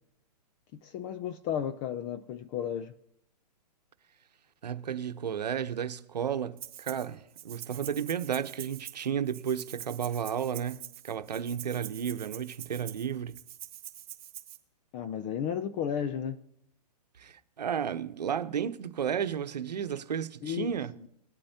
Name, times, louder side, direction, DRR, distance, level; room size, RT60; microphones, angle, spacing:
voice 1, 0.8-2.9 14.9-16.4 20.4-20.7, left 9 dB, 25° left, 0.5 m, -33 dB
voice 2, 4.6-13.4 17.2-20.9, right 8 dB, 80° right, 0.9 m, -33 dB
Rattle (instrument), 6.6-7.1 7.4-14.6, right 11 dB, 25° right, 1.7 m, -45 dB
20.0 x 8.5 x 2.8 m
hypercardioid pair, 135°, 21 cm